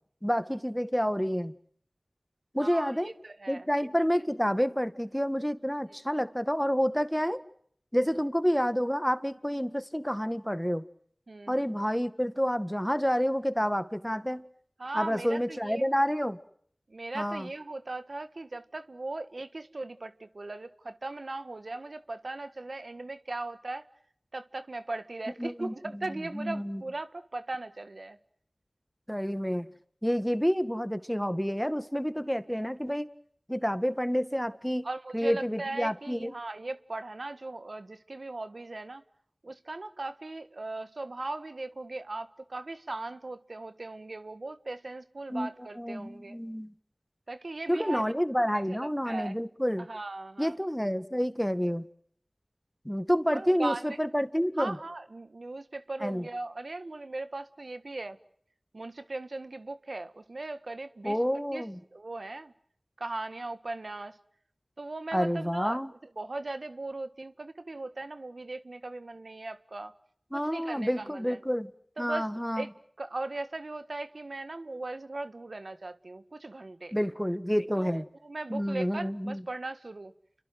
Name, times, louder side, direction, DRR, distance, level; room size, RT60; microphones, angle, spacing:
voice 1, 0.2-1.5 2.5-3.1 3.5-7.4 7.9-10.9 11.5-14.4 14.9-16.4 17.1-17.5 25.4-26.1 26.3-26.8 29.1-29.7 30.0-33.1 33.5-34.9 35.1-36.4 45.3-45.5 45.8-46.7 47.7-49.9 50.4-51.9 52.9-54.8 56.0-56.3 61.0-61.8 65.1-65.9 70.3-71.7 72.0-72.7 76.9-78.1 78.5-79.4, equal, 5° left, 1.9 m, -29 dB
voice 2, 2.6-3.7 11.3-11.6 14.8-15.9 16.9-23.9 24.3-28.2 34.8-39.0 39.4-46.4 47.3-48.0 48.7-49.3 49.8-50.6 53.3-54.0 54.6-58.2 58.7-61.7 61.9-62.5 63.0-64.2 64.8-65.8 66.2-69.9 70.3-71.4 72.0-72.3 72.6-72.7 73.0-77.0 77.8-80.1, right 2 dB, 80° right, 1.5 m, -38 dB
30.0 x 23.5 x 7.8 m
wide cardioid pair, 40°, 0 cm